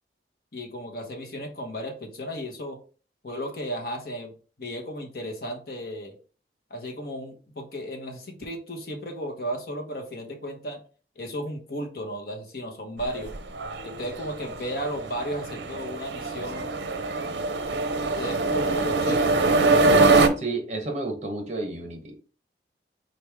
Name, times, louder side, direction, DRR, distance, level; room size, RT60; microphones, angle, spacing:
voice 1, 0.5-2.8 3.2-4.3 4.6-6.1 6.7-10.8 11.2-13.3 13.8-16.7 18.1-19.4, equal, 55° left, 2 dB, 1.0 m, -34 dB
sound 1, 13.0-20.3, right 3 dB, 70° right, 0.6 m, -23 dB
voice 2, 20.4-22.1, right 2 dB, 40° right, 3 dB, 1.1 m, -31 dB
4.3 x 3.2 x 3.4 m, 0.37 s
head